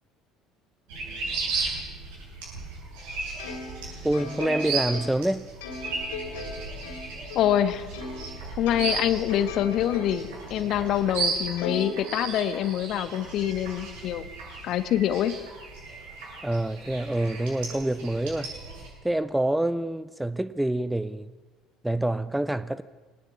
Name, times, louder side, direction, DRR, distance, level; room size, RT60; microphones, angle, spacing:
sound 1, 0.9-18.9, right 4 dB, 65° right, 7.8 m, -35 dB
Plucked string instrument, 3.4-8.3 8.7-10.4 10.8-10.9 11.6-12.7, left 3 dB, 65° left, 3.9 m, -39 dB
voice 1, 4.0-5.4 16.4-18.5 19.0-21.3 21.8-22.8, right 1 dB, 5° right, 0.7 m, -26 dB
voice 2, 7.3-7.9 8.6-14.2 14.6-15.4, left 11 dB, 50° left, 1.4 m, -25 dB
22.5 x 18.5 x 8.6 m
figure-of-eight pair, 60°, 0 cm